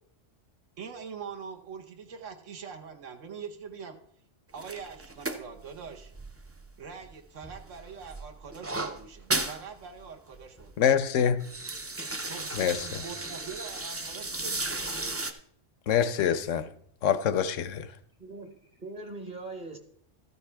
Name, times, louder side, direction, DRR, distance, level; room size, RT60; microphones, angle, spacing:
voice 1, 0.8-4.0 4.5-6.1 6.8-10.7 12.3-14.8, right 6 dB, 80° right, 4 dB, 1.3 m, -43 dB
sound 1, 4.6-7.1 7.4-9.6 10.0-10.1 10.3-10.7 11.2-15.3, right 2 dB, 25° right, 0.3 m, -35 dB
voice 2, 10.8-11.5 12.5-13.0 15.9-16.7 17.0-17.9, left 8 dB, 80° left, 13 dB, 1.0 m, -25 dB
voice 3, 18.2-19.8, right 2 dB, 40° right, 6 dB, 1.1 m, -41 dB
13.5 x 9.3 x 3.4 m, 0.67 s
omnidirectional pair, 1.3 m